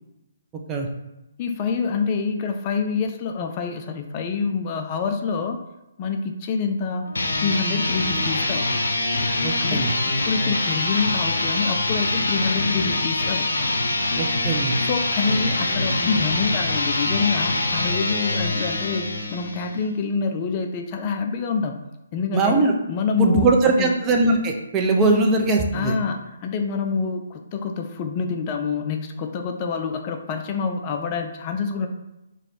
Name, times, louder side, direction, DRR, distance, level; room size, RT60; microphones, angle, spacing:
voice 1, 1.4-5.6 6.0-7.1 7.4-8.7 9.6-13.5 14.8-21.8 22.1-22.6 22.9-23.9 25.7-31.9, left 5 dB, 30° left, 4 dB, 0.4 m, -26 dB
sound 1, 7.0-19.8, left 2 dB, 90° left, 0.6 m, -24 dB
voice 2, 9.4-9.9 14.2-14.8 22.3-22.7 23.2-25.9, right 3 dB, 20° right, 1 dB, 0.5 m, -20 dB
3.1 x 2.6 x 4.3 m, 0.96 s
hypercardioid pair, 145°, 0 cm